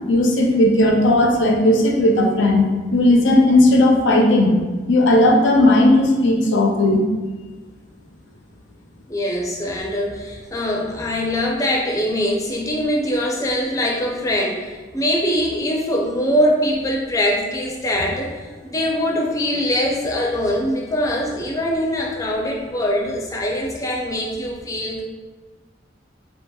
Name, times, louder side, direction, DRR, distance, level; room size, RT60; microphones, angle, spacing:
voice 1, 0.1-2.7 2.9-4.6 4.9-7.0, left 1 dB, 80° left, 1 dB, 0.5 m, -15 dB
voice 2, 9.1-25.0, equal, 20° left, -1 dB, 0.4 m, -22 dB
2.8 x 2.7 x 2.2 m, 1.3 s
head